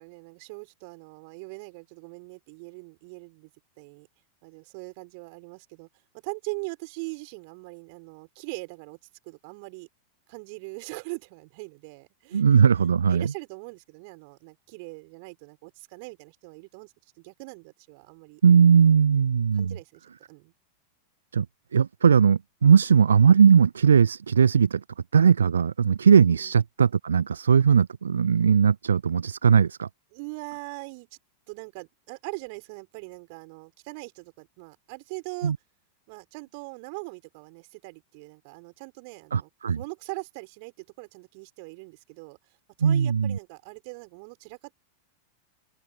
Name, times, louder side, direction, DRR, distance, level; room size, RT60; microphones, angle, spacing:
voice 1, 0.0-3.5 3.8-4.1 4.4-5.9 6.1-9.0 9.2-9.9 10.3-12.4 13.1-18.4 19.5-20.5 26.4-26.5 30.1-31.2 31.5-35.5 36.1-42.4 42.8-44.7, right 31 dB, 45° right, 4.8 m, -41 dB
voice 2, 12.3-13.3 18.4-19.8 21.3-21.5 21.7-24.8 25.1-29.9 35.4-35.6 39.3-39.8 42.8-43.4, right 7 dB, 70° right, 0.5 m, -19 dB
open air
figure-of-eight pair, 90°, 0 cm